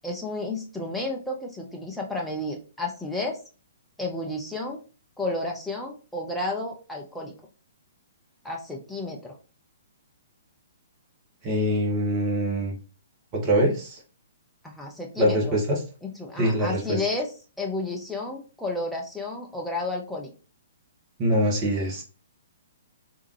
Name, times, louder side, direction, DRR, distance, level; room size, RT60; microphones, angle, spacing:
voice 1, 0.0-3.4 4.0-4.8 5.2-7.3 8.4-9.4 14.6-15.6 16.2-17.3 17.6-20.3, left 2 dB, ahead, -2 dB, 0.6 m, -31 dB
voice 2, 11.4-12.7 13.3-14.0 15.2-15.8 16.4-17.0 21.2-22.0, equal, 25° right, -1 dB, 1.3 m, -24 dB
3.6 x 2.7 x 3.1 m, 0.35 s
figure-of-eight pair, 120°, 0 cm